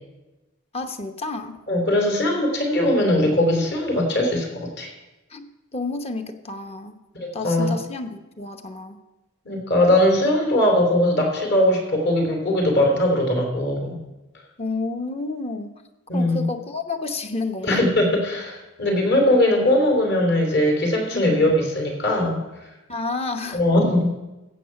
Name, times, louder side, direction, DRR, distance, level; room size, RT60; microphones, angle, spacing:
voice 1, 0.7-1.6 5.3-5.5 5.7-6.9 7.3-9.0 14.6-15.8 16.1-17.8 21.1-21.5 22.9-23.6, left 3 dB, 30° left, 6 dB, 0.9 m, -30 dB
voice 2, 1.7-4.9 7.1-7.8 9.4-13.9 16.1-16.5 17.6-22.4 23.5-24.1, left 1 dB, 60° left, 1 dB, 3.1 m, -20 dB
15.5 x 7.7 x 5.8 m, 1.1 s
head